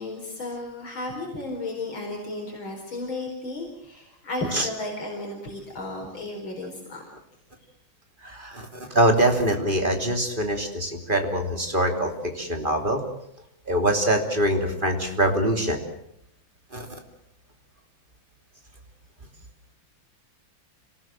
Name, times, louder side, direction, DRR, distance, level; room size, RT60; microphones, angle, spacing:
voice 1, 0.0-7.0, left 2 dB, 75° left, 1 dB, 5.1 m, -34 dB
voice 2, 8.2-8.7 8.9-13.0 13.7-15.8 16.7-16.9, right 1 dB, 25° right, 4 dB, 3.2 m, -23 dB
26.5 x 18.5 x 7.7 m, 0.74 s
omnidirectional pair, 2.2 m